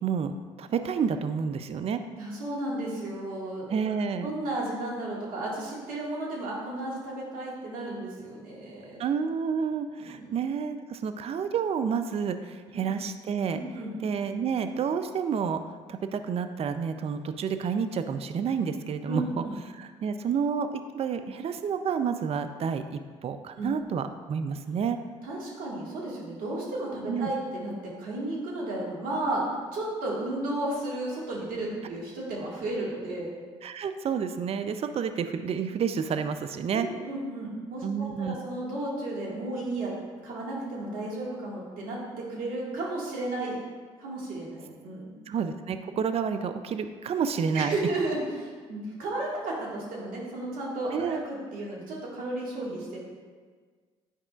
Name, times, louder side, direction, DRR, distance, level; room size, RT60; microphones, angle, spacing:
voice 1, 0.0-0.3 0.6-2.0 3.7-4.3 9.0-13.6 14.0-15.6 15.9-19.4 19.7-25.0 27.1-27.3 33.6-36.9 37.8-38.4 45.3-47.8 50.9-51.2, right 6 dB, 40° right, 9 dB, 0.5 m, -29 dB
voice 2, 2.2-3.8 4.2-9.0 10.0-10.3 13.5-14.0 19.1-19.6 23.6-23.7 25.2-29.5 29.7-33.3 36.7-39.9 40.2-43.6 44.0-45.1 47.5-53.0, right 2 dB, 65° right, -4 dB, 1.9 m, -33 dB
9.9 x 4.8 x 2.4 m, 1.5 s
hypercardioid pair, 55°, 15 cm